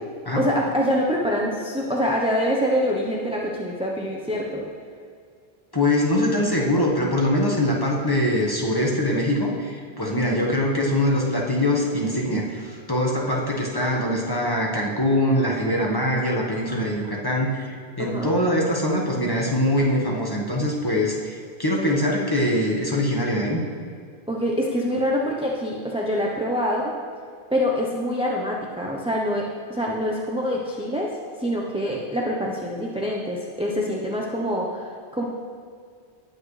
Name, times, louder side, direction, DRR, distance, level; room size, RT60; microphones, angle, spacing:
voice 1, 0.4-4.7 10.2-10.4 18.0-18.3 24.3-26.9 27.5-31.1 31.4-35.2, equal, 5° right, -2 dB, 0.8 m, -25 dB
voice 2, 5.7-23.6, left 1 dB, 20° left, -2 dB, 1.5 m, -23 dB
18.5 x 7.6 x 3.3 m, 2.1 s
omnidirectional pair, 1.0 m